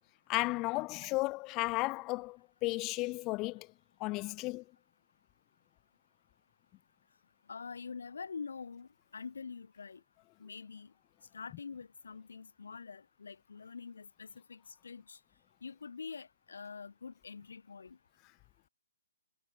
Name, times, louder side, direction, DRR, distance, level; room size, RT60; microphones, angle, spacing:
voice 1, 0.3-3.7 4.0-4.6, left 23 dB, 25° left, 1.2 m, -34 dB
voice 2, 7.5-10.0 10.4-10.9 11.3-15.2 15.6-18.0, left 5 dB, 75° left, 2.5 m, -46 dB
hypercardioid pair, 145°, 0 cm